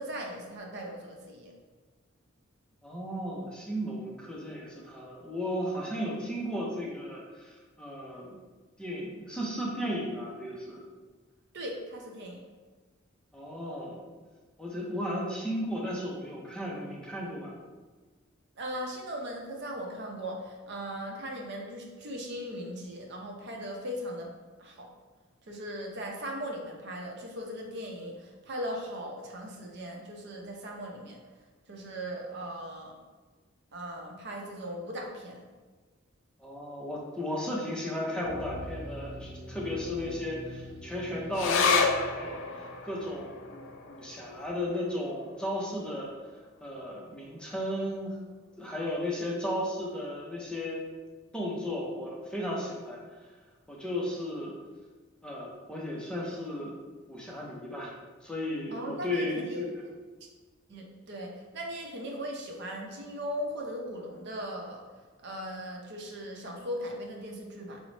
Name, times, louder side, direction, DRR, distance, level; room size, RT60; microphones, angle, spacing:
voice 1, 0.0-1.5 11.5-12.4 18.6-24.3 24.6-24.9 25.5-31.2 31.7-32.9 33.7-35.5 58.7-59.7 60.7-64.8 65.2-67.8, equal, 55° right, 0 dB, 0.6 m, -38 dB
voice 2, 2.8-8.4 8.8-10.8 13.3-14.0 14.6-17.5 36.4-46.1 46.6-48.2 48.6-50.8 51.3-53.0 53.7-54.5 55.2-56.7 57.1-57.9 58.2-59.8, left 1 dB, 5° left, -3 dB, 0.5 m, -35 dB
sound 1, 38.2-44.0 44.3-44.5, equal, 30° right, 0.9 m, -45 dB
sound 2, 41.3-48.1 48.4-48.5 48.9-49.5 50.1-50.2, left 5 dB, 65° left, 0.3 m, -33 dB
3.8 x 2.0 x 3.1 m, 1.4 s
head